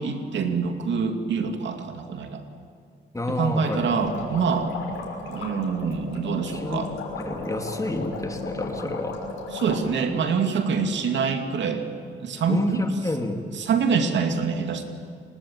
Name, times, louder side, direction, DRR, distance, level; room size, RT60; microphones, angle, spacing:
voice 1, 0.0-2.4 3.3-4.7 5.3-6.9 9.5-11.9 12.2-12.8 13.6-14.8, right 5 dB, 65° right, 6 dB, 2.6 m, -25 dB
voice 2, 3.1-3.8 6.5-6.9 7.2-9.2 12.5-13.4, left 2 dB, 15° left, 4 dB, 3.0 m, -29 dB
sound 1, 3.6-9.8, left 3 dB, 80° left, 6.2 m, -35 dB
28.5 x 19.5 x 8.9 m, 2.3 s
cardioid pair, 90°, 20 cm